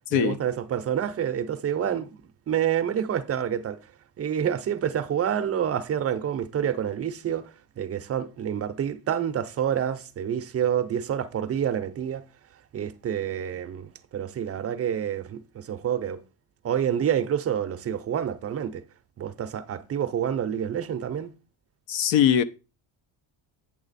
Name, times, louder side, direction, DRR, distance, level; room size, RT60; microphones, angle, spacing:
voice 1, 0.1-2.1 2.5-3.8 4.2-7.5 7.8-12.2 12.7-16.2 16.6-18.8 19.2-21.3, right 9 dB, 35° right, 0.5 m, -28 dB
voice 2, 21.9-22.4, left 9 dB, 85° left, 0.8 m, -21 dB
8.8 x 6.7 x 4.0 m
cardioid pair, 145°, 45 cm